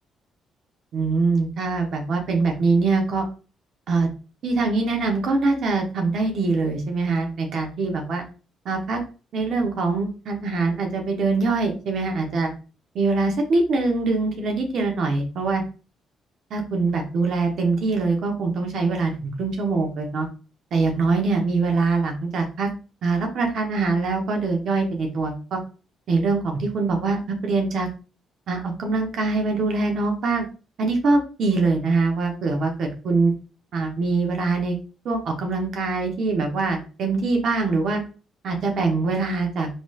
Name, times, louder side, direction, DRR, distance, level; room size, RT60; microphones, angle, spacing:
voice 1, 0.9-3.2 3.9-4.1 4.4-8.2 8.6-9.0 9.3-12.5 12.9-15.6 16.5-20.3 20.7-22.7 23.0-25.6 26.1-27.9 28.5-30.5 30.8-33.3 33.7-34.8 35.0-38.0 38.4-39.7, right 3 dB, 65° right, 2 dB, 0.7 m, -23 dB
3.1 x 3.0 x 2.3 m, 0.34 s
cardioid pair, 90°, 0 cm